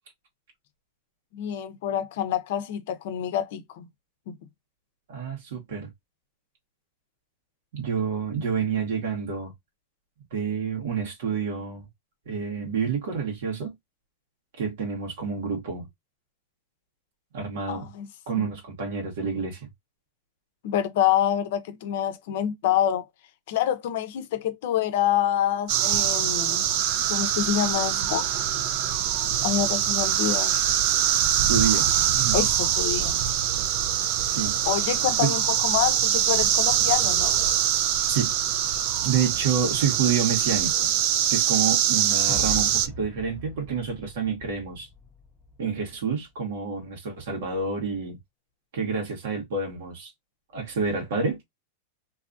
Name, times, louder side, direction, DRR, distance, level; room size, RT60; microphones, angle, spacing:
voice 1, 1.3-3.9 4.3-4.4 17.7-18.1 18.4-18.5 20.6-23.0 23.5-26.6 27.1-28.3 29.4-30.5 32.3-33.2 34.7-37.5, left 10 dB, 65° left, 0.6 m, -27 dB
voice 2, 5.1-5.9 7.7-9.5 10.3-11.9 12.3-13.7 14.6-15.9 17.3-17.9 18.3-19.7 31.5-32.4 34.2-34.6 35.2-35.3 38.1-38.3 39.0-40.9 41.3-44.9 45.6-48.2 48.7-50.1 50.5-51.4, right 6 dB, 75° right, 1.3 m, -28 dB
sound 1, 25.7-42.9, right 10 dB, 50° right, 0.4 m, -23 dB
sound 2, 42.3-45.6, left 3 dB, 5° left, 0.5 m, -40 dB
2.6 x 2.4 x 2.5 m
supercardioid pair, 140°, 0 cm